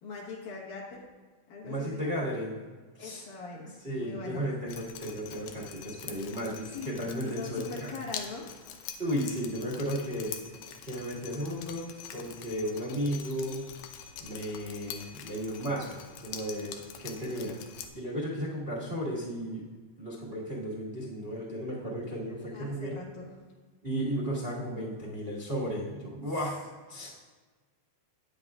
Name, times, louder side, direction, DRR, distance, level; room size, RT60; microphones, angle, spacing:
voice 1, 0.0-1.1 1.5-2.2 3.0-4.5 6.7-8.5 22.5-23.3 26.4-26.5, left 4 dB, 70° left, -4 dB, 2.7 m, -42 dB
voice 2, 1.6-2.6 2.9-3.2 3.8-7.9 9.0-10.6 10.8-11.8 12.1-13.7 14.2-16.7 17.0-17.6 17.9-19.7 20.0-22.9 23.8-26.6 26.9-27.1, equal, 25° right, -7 dB, 1.2 m, -34 dB
Drip, 4.7-17.9, left 8 dB, 85° left, 2.4 m, -45 dB
13.0 x 9.7 x 2.5 m, 1.4 s
omnidirectional pair, 3.8 m